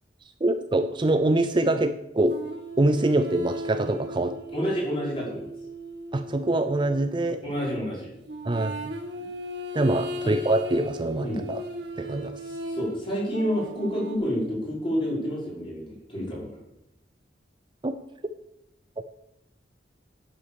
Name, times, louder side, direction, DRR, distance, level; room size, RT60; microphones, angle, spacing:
voice 1, 0.4-2.4 2.8-4.4 6.1-7.4 8.4-8.8 9.7-11.6 12.0-12.4 17.8-17.9 19.0-19.1, right 2 dB, 25° right, 9 dB, 0.5 m, -24 dB
sound 1, 2.3-7.3 8.3-14.2, equal, 65° right, 1.9 m, -37 dB
voice 2, 4.5-5.4 7.4-8.1 10.2-10.3 11.2-11.4 12.4-16.5, equal, 30° left, -5 dB, 5.3 m, -29 dB
9.8 x 8.4 x 7.0 m, 0.86 s
head